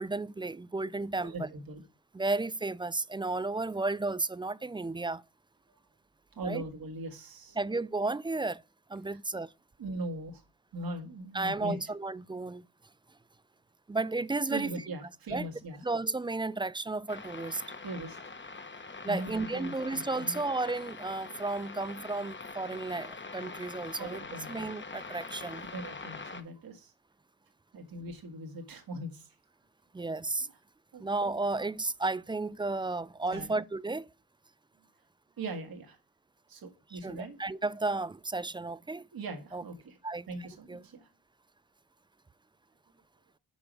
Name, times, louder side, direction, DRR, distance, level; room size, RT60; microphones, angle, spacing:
voice 1, 0.0-1.5 2.1-5.2 6.4-6.6 7.6-8.6 8.9-9.5 11.3-12.6 13.9-14.7 15.3-15.5 15.8-17.6 19.0-24.2 24.5-25.6 29.9-30.5 31.0-34.1 36.9-39.1 39.5-39.6 40.0-40.3 40.7-40.8, right 3 dB, 15° right, 0.3 m, -33 dB
voice 2, 1.2-1.8 6.3-7.6 9.1-9.2 9.8-10.4 10.7-11.8 14.5-15.8 17.8-18.3 19.1-20.4 24.0-24.7 25.7-26.9 27.7-29.3 30.9-31.0 33.3-33.5 35.4-36.0 36.5-37.4 39.1-40.0 40.3-41.1, right 2 dB, 70° right, 1.9 m, -40 dB
sound 1, 17.1-26.4, left 4 dB, 30° left, 1.3 m, -44 dB
6.2 x 4.9 x 6.2 m
cardioid pair, 60°, 37 cm